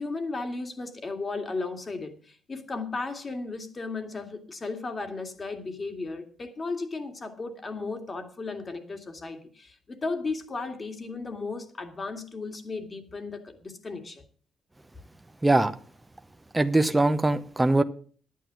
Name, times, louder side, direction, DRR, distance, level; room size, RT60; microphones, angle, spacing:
voice 1, 0.0-14.2, left 3 dB, 35° left, 2.2 m, -35 dB
voice 2, 16.5-17.8, right 2 dB, 15° right, 0.8 m, -22 dB
11.0 x 9.3 x 6.2 m
cardioid pair, 90°, 0 cm